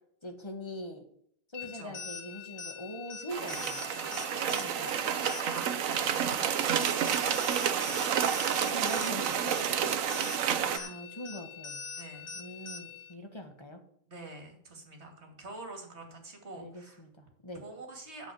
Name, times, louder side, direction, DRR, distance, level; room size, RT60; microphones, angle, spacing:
voice 1, 0.2-1.0 1.5-3.8 4.5-4.9 8.7-9.6 10.7-11.8 12.3-13.8 16.1-16.2 16.5-17.6, equal, 15° left, 4 dB, 1.6 m, -42 dB
sound 1, 1.5-13.1, left 6 dB, 35° left, 1.1 m, -43 dB
sound 2, 3.3-10.8, right 9 dB, 60° right, 0.8 m, -30 dB
voice 2, 3.9-8.2 9.1-10.2 10.7-10.9 11.9-12.3 14.1-17.0 17.6-18.3, right 2 dB, 30° right, 3 dB, 2.8 m, -46 dB
8.2 x 7.6 x 7.7 m, 0.67 s
omnidirectional pair, 2.3 m